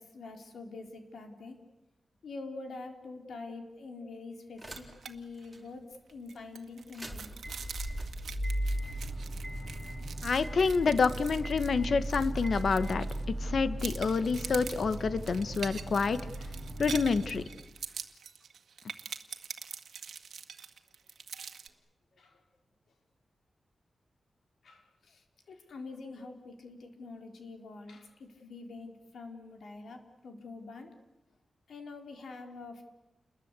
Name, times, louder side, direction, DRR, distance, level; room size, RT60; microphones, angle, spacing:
voice 1, 0.0-1.6 2.2-7.3 22.1-22.4 24.6-31.0 31.7-32.8, left 3 dB, 75° left, 5 dB, 4.0 m, -45 dB
sound 1, 4.6-5.1 5.5-5.6 6.8-17.4, right 1 dB, 5° right, 3.8 m, -37 dB
sound 2, 4.7-5.1 5.4-5.6 5.9-13.4 13.8-21.7, right 7 dB, 80° right, 1.9 m, -45 dB
voice 2, 10.2-13.1 13.4-16.2 16.8-17.4, left 5 dB, 55° left, 13 dB, 1.3 m, -28 dB
29.5 x 22.0 x 8.3 m, 0.99 s
wide cardioid pair, 165°, 0 cm